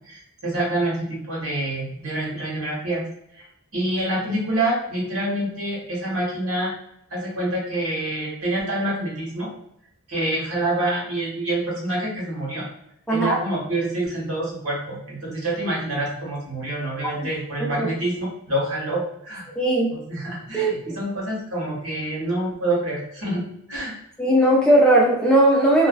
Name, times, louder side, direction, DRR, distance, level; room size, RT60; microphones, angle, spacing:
voice 1, 0.1-3.0 3.3-3.5 3.7-6.7 7.1-9.5 10.1-12.6 13.1-19.5 19.9-23.4 23.7-23.9, right 1 dB, 90° right, -4 dB, 1.0 m, -27 dB
voice 2, 19.6-19.9 20.5-20.7 24.2-25.9, right 1 dB, 5° left, -4 dB, 0.4 m, -17 dB
2.4 x 2.1 x 2.4 m, 0.78 s
head